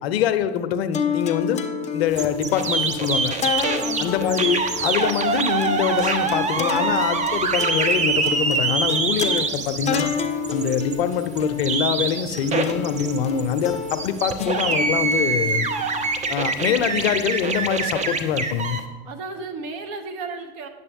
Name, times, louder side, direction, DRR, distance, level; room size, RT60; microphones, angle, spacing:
voice 1, 0.0-1.6 1.9-3.3 4.0-10.1 10.5-15.7 16.3-18.8, left 8 dB, 65° left, 11 dB, 0.7 m, -24 dB
sound 1, 0.9-17.4, left 7 dB, 20° left, 0.6 m, -30 dB
sound 2, 2.1-18.8, right 4 dB, 20° right, 0.7 m, -25 dB
voice 2, 3.8-4.3 16.4-16.8 19.0-20.7, right 4 dB, 50° right, 6 dB, 1.1 m, -34 dB
9.1 x 6.7 x 3.5 m, 1.3 s
hypercardioid pair, 90°, 33 cm